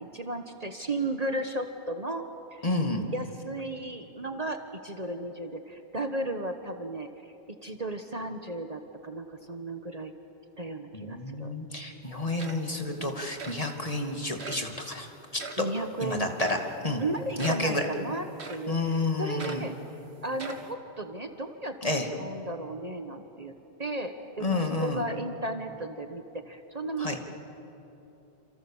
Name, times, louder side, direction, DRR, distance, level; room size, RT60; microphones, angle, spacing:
voice 1, 0.0-2.2 2.5-2.7 3.1-7.3 7.6-10.1 10.6-11.5 12.9-13.1 13.4-13.5 15.6-16.3 17.0-19.7 20.2-21.8 22.1-23.5 23.8-27.2, right 2 dB, 35° right, 6 dB, 1.4 m, -35 dB
voice 2, 2.6-3.0 10.9-15.1 16.0-16.6 16.8-17.0 17.4-17.9 18.7-19.7 21.8-22.1 24.4-25.0 27.0-27.2, left 2 dB, 35° left, 3 dB, 2.5 m, -30 dB
sound 1, 12.0-12.1 12.4-12.9 13.4-13.6 14.4-14.7 15.4-15.7 16.4-16.7 17.4-17.7 18.4-18.7 19.4-19.7 20.3-20.7, right 3 dB, 75° right, 1.9 m, -41 dB
28.5 x 27.5 x 7.3 m, 2.9 s
omnidirectional pair, 1.1 m